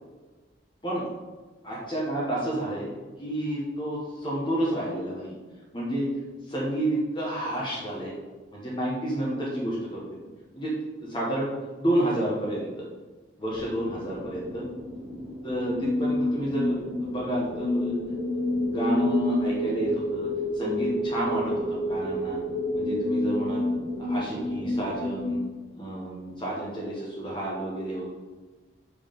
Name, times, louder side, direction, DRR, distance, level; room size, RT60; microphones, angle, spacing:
voice 1, 1.6-2.9 3.2-5.3 5.7-6.1 6.5-8.1 8.5-10.0 10.5-10.8 11.1-11.5 11.8-12.8 13.4-14.6 15.4-17.9 18.6-20.3 20.5-22.4 22.7-23.6 24.1-25.4 25.7-28.1, right 1 dB, 25° left, -5 dB, 1.3 m, -30 dB
sound 1, 13.6-25.3, left 1 dB, 30° right, 1.2 m, -29 dB
5.7 x 4.7 x 5.3 m, 1.3 s
head